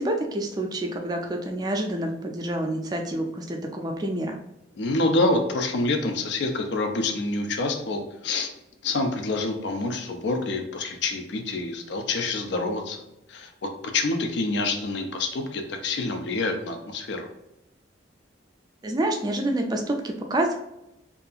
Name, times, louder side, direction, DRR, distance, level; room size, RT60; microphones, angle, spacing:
voice 1, 0.0-4.4 18.8-20.5, right 1 dB, 20° right, 3 dB, 0.3 m, -28 dB
voice 2, 4.8-8.5 8.8-13.0 13.3-13.5 13.9-17.3, left 2 dB, 65° left, 5 dB, 0.4 m, -27 dB
2.7 x 2.4 x 2.3 m, 0.87 s
head